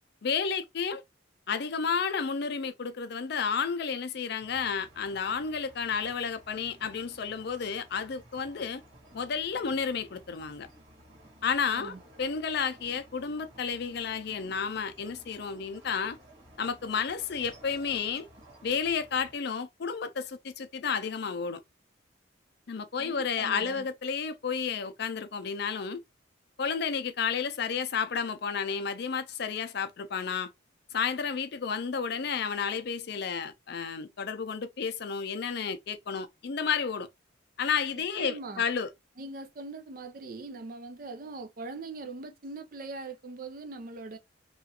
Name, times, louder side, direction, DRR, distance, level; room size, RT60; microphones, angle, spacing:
voice 1, 0.2-1.0 1.5-8.8 9.1-10.7 11.4-16.2 16.6-18.3 18.6-21.6 22.7-26.0 26.6-30.5 30.9-37.1 37.6-38.9, left 6 dB, 55° left, 0.5 m, -31 dB
sound 1, 4.4-19.4, right 1 dB, 70° right, 1.5 m, -55 dB
voice 2, 23.0-23.9 38.2-38.6 39.2-44.2, right 3 dB, 45° right, 0.5 m, -41 dB
3.0 x 2.4 x 2.7 m
head